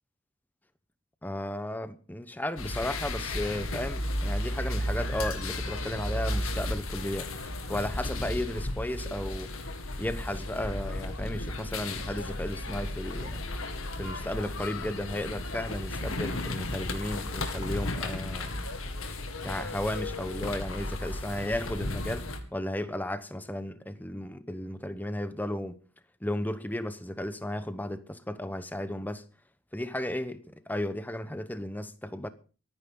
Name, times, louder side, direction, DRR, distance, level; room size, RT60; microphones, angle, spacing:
voice 1, 1.2-7.3 7.7-9.6 10.0-13.4 13.9-18.6 19.4-25.8 26.2-29.2 29.7-32.3, left 1 dB, 10° left, 0.9 m, -34 dB
sound 1, 2.6-22.4, left 1 dB, 75° left, 2.1 m, -34 dB
24.0 x 9.5 x 3.9 m
head